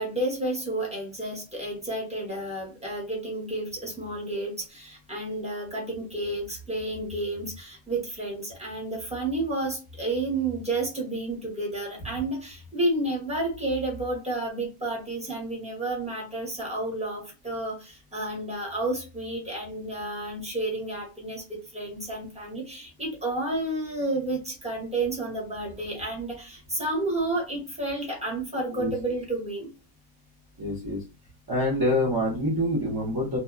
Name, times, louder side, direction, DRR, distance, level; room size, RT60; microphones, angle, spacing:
voice 1, 0.0-29.7, right 2 dB, 5° right, -2 dB, 0.8 m, -31 dB
voice 2, 30.6-31.0 31.5-33.4, left 1 dB, 30° right, -6 dB, 0.4 m, -26 dB
2.7 x 2.2 x 2.3 m, 0.31 s
omnidirectional pair, 1.5 m